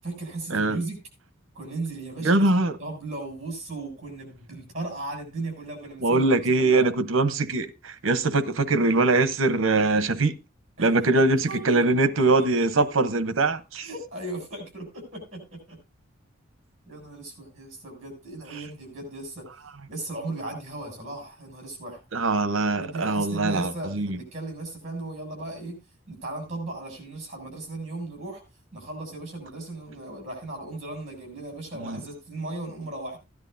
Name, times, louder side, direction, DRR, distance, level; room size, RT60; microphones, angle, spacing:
voice 1, 0.0-1.0 1.6-2.5 2.8-6.3 6.6-6.9 10.8-10.9 11.5-12.7 13.8-15.8 16.9-19.5 19.9-22.0 22.8-25.8 26.1-28.4 28.7-33.2, right 2 dB, 35° right, 7.0 m, -36 dB
voice 2, 2.2-2.7 6.0-10.3 10.8-13.9 22.1-24.2 31.8-32.0, right 2 dB, 80° right, 0.9 m, -22 dB
16.5 x 10.5 x 2.6 m
head